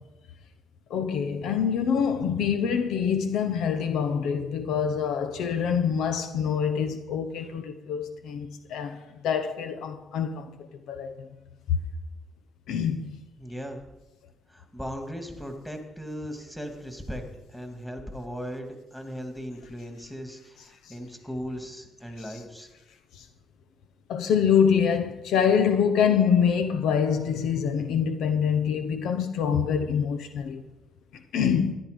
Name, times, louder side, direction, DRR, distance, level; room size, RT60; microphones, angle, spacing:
voice 1, 0.9-9.0 9.2-10.5 10.9-11.3 12.7-13.2 24.1-30.6 31.3-31.7, left 7 dB, 80° left, 0.8 m, -25 dB
voice 2, 13.4-13.8 14.5-17.2 17.5-22.7, equal, 5° left, 2.3 m, -37 dB
13.5 x 10.5 x 5.2 m
cardioid pair, 90°, 0 cm